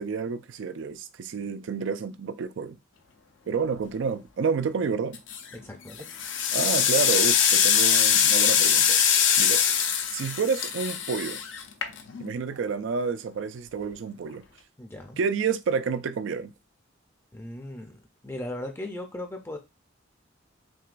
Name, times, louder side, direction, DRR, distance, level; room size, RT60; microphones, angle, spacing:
voice 1, 0.0-2.8 3.5-5.2 6.5-9.0 9.4-9.6 10.1-11.4 12.2-14.4 15.2-16.5, right 5 dB, 75° right, 0.4 m, -29 dB
sound 1, 5.1-5.5 6.0-12.3, left 8 dB, 70° left, 0.6 m, -22 dB
voice 2, 5.6-6.1 14.8-15.2 17.3-19.6, left 1 dB, 15° left, 0.5 m, -38 dB
6.0 x 2.2 x 2.5 m
head